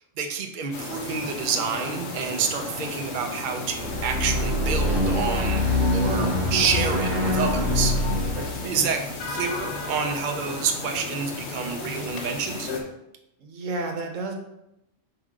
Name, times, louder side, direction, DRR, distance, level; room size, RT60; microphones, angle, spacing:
voice 1, 0.2-5.7 5.9-8.3 8.7-12.7, right 6 dB, 50° right, 4 dB, 0.7 m, -28 dB
sound 1, 0.7-12.8, left 3 dB, 60° left, 1.1 m, -34 dB
sound 2, 3.7-10.0, left 1 dB, 20° right, 1.6 m, -25 dB
voice 2, 8.4-8.9 13.4-14.3, right 3 dB, 85° right, 3 dB, 1.3 m, -32 dB
5.2 x 5.0 x 3.7 m, 0.85 s
omnidirectional pair, 1.3 m